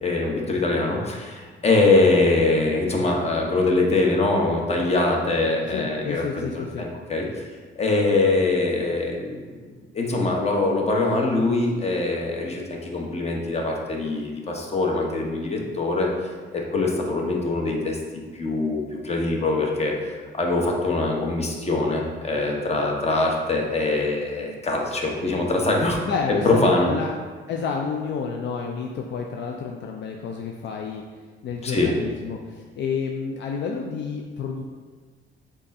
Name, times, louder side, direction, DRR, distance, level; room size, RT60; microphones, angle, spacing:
voice 1, 0.0-7.5 7.8-9.7 9.9-16.1 16.5-18.0 18.3-19.9 20.3-26.0 26.4-26.9 31.6-31.9, left 2 dB, 30° left, 0 dB, 0.9 m, -23 dB
voice 2, 5.7-6.9 26.1-27.1 27.5-31.0 31.4-34.7, left 5 dB, 65° left, 1 dB, 0.4 m, -30 dB
5.1 x 2.5 x 4.1 m, 1.5 s
cardioid pair, 90°, 20 cm